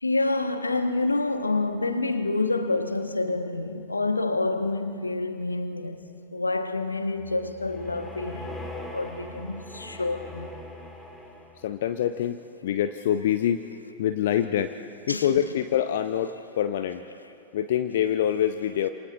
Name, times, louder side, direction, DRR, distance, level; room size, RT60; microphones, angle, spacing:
voice 1, 0.0-6.0 6.3-10.5 15.1-15.3, left 2 dB, 80° left, 1.2 m, -28 dB
sound 1, 7.2-11.8, left 1 dB, 5° left, 3.6 m, -41 dB
voice 2, 11.6-13.6 14.0-14.7 15.1-17.0 17.5-18.9, left 10 dB, 55° left, 0.7 m, -25 dB
27.5 x 27.0 x 3.8 m
figure-of-eight pair, 90°, 0 cm